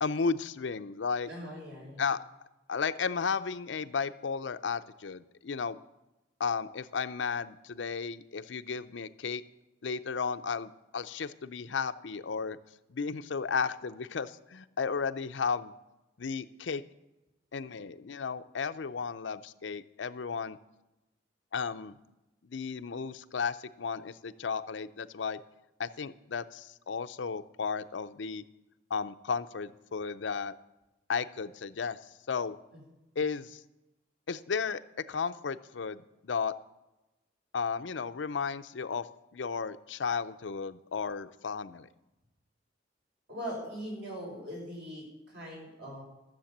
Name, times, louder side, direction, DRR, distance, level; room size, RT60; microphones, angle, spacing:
voice 1, 0.0-1.3 2.0-2.2 2.7-5.8 6.4-9.4 9.8-12.6 12.9-15.7 16.2-16.8 17.5-20.6 21.5-21.9 22.4-25.4 25.8-28.4 28.9-30.6 31.1-32.0 32.3-32.6 33.2-33.6 34.3-34.8 35.1-36.5 37.5-39.1 39.3-41.9, left 5 dB, 85° left, 12 dB, 0.6 m, -34 dB
voice 2, 1.3-2.1 32.7-32.8 43.3-46.0, equal, 70° right, -1 dB, 5.7 m, -41 dB
13.0 x 7.5 x 7.3 m, 0.98 s
head